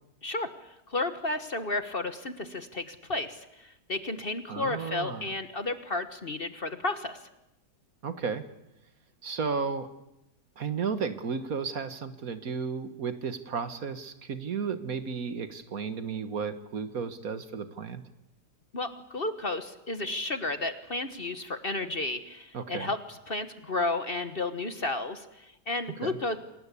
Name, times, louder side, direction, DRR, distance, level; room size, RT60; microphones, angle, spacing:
voice 1, 0.2-7.2 18.7-26.4, left 2 dB, 35° left, 10 dB, 1.3 m, -32 dB
voice 2, 4.5-5.3 8.0-8.5 9.2-9.9 10.6-18.0 22.5-22.9 26.0-26.2, right 5 dB, 60° right, 10 dB, 1.8 m, -33 dB
28.0 x 19.0 x 8.4 m, 0.90 s
omnidirectional pair, 1.7 m